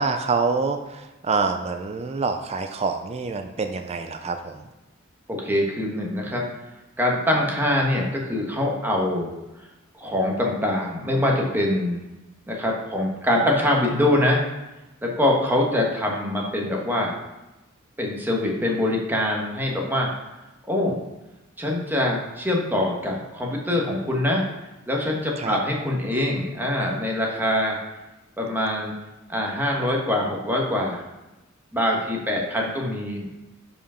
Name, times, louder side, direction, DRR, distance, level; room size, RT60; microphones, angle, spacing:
voice 1, 0.0-4.7 25.4-25.6, right 4 dB, 30° right, 6 dB, 0.4 m, -26 dB
voice 2, 5.3-6.5 7.0-9.3 9.9-12.0 12.5-14.4 15.0-17.2 18.0-20.1 20.7-21.0 21.6-24.4 24.9-27.8 28.4-28.9 29.3-31.0 31.7-33.3, left 1 dB, 10° right, -1 dB, 1.2 m, -24 dB
5.1 x 4.9 x 5.6 m, 1.0 s
head